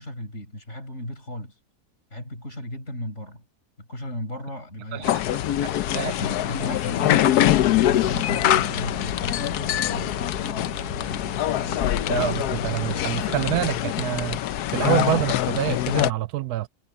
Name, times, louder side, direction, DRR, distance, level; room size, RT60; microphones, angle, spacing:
voice 1, 0.0-1.5 2.1-3.4 3.8-5.4 5.9-10.3, left 1 dB, 45° left, 8.3 m, -35 dB
voice 2, 4.9-5.2 5.9-6.1 12.1-14.4 14.7-16.7, right 15 dB, 85° right, 1.1 m, -26 dB
sound 1, 5.0-16.1, left 13 dB, 90° left, 1.2 m, -24 dB
sound 2, 7.7-13.7, right 2 dB, 65° right, 7.4 m, -38 dB
omnidirectional pair, 1.6 m